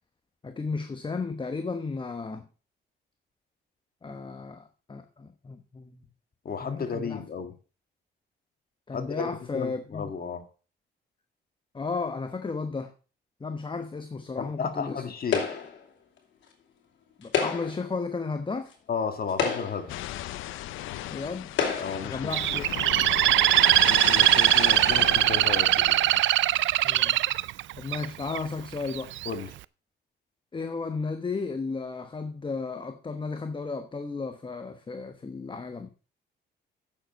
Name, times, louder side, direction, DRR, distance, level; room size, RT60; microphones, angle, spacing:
voice 1, 0.4-2.5 4.0-6.0 6.6-7.2 8.9-10.1 11.7-12.9 13.4-15.0 17.2-18.7 21.1-21.5 22.0-22.9 26.8-27.2 27.8-29.1 30.5-35.9, left 4 dB, 25° left, 1.0 m, -34 dB
voice 2, 6.4-7.5 8.9-10.4 14.4-15.5 18.9-20.0 21.8-22.3 23.9-26.0 29.2-29.5, left 6 dB, 50° left, 1.7 m, -33 dB
sound 1, 15.3-15.8 17.2-17.9 18.7-18.8 19.3-20.0 20.8-20.9 21.5-22.1, left 6 dB, 70° left, 2.8 m, -29 dB
sound 2, 19.9-26.2, left 14 dB, 90° left, 0.6 m, -35 dB
Bird, 22.3-28.4 28.9-29.3, right 15 dB, 70° right, 0.4 m, -21 dB
8.9 x 6.9 x 5.2 m
cardioid pair, 90°, 20 cm